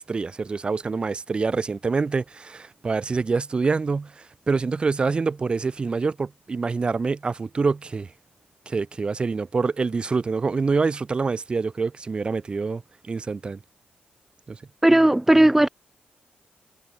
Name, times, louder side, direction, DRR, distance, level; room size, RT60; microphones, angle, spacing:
voice 1, 0.0-8.1 8.7-12.8 13.1-13.6 14.5-14.6, right 4 dB, 30° right, 4.3 m, -26 dB
voice 2, 14.8-15.7, right 1 dB, 10° right, 0.7 m, -16 dB
wide cardioid pair, 135°, 3 cm